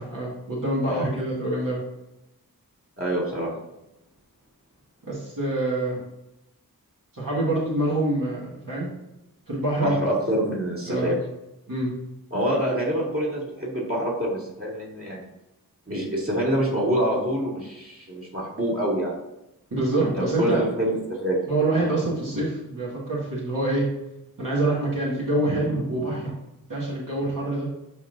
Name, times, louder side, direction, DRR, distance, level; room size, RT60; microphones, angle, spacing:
voice 1, 0.0-1.8 5.0-6.0 7.1-8.9 9.5-9.9 10.9-11.1 11.7-11.9 19.7-20.6 21.5-23.8 24.4-26.3 26.7-27.7, right 2 dB, 65° right, -7 dB, 2.0 m, -26 dB
voice 2, 3.0-3.6 9.8-11.1 12.3-15.3 15.9-19.1 20.1-21.4, right 1 dB, 40° right, -5 dB, 2.6 m, -26 dB
12.0 x 4.0 x 2.6 m, 0.91 s
wide cardioid pair, 50°, 36 cm